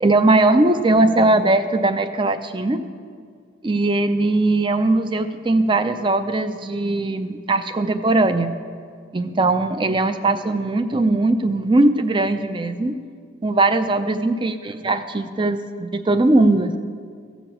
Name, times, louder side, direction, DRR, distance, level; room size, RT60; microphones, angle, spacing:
voice 1, 0.0-2.8 3.6-8.5 9.1-13.0 13.4-16.8, right 2 dB, 25° right, 10 dB, 0.4 m, -19 dB
15.0 x 5.1 x 7.2 m, 2.1 s
head